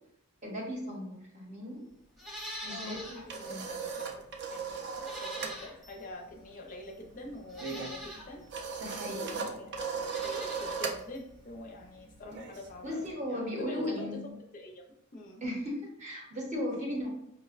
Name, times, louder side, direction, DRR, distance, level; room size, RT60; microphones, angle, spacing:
voice 1, 0.4-1.9 2.6-3.7 8.8-9.6 12.8-14.2 15.4-17.1, left 1 dB, 30° right, -1 dB, 0.8 m, -37 dB
Livestock farm animals working animals, 2.2-3.2 3.6-3.7 5.0-6.0 6.8-6.9 7.5-8.3 9.9-10.9 11.1-11.2, equal, ahead, 0.7 m, -43 dB
voice 2, 2.7-8.4 9.1-14.2 14.5-14.8 15.1-15.4, left 1 dB, 35° left, 0 dB, 0.4 m, -46 dB
sound 1, 2.9-5.6 5.9-6.2 6.4-13.1, right 5 dB, 50° right, 0.4 m, -38 dB
4.9 x 2.1 x 2.4 m, 0.76 s
head